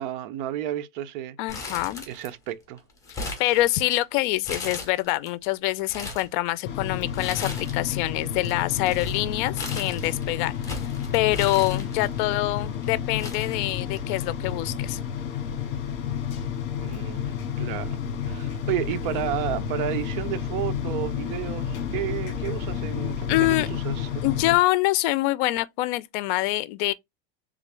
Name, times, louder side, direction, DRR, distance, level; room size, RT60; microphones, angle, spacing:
voice 1, 0.0-1.4 2.1-2.8 16.8-17.2 17.6-18.0 18.3-24.2, right 12 dB, 60° right, 0.6 m, -32 dB
voice 2, 1.4-2.0 3.4-10.5 11.1-15.0 23.3-23.7 24.2-26.9, left 18 dB, 55° left, 0.6 m, -25 dB
Crumpling crinkling, 1.5-2.5 2.8-4.0 4.4-5.3 5.7-6.3 7.1-7.9 8.2-12.2 12.8-12.9 13.2-14.2 14.5-14.6 15.6-15.9, left 3 dB, 10° left, 1.5 m, -37 dB
sound 1, 6.6-24.6, left 8 dB, 40° left, 1.7 m, -30 dB
3.7 x 3.6 x 3.3 m
supercardioid pair, 140°, 29 cm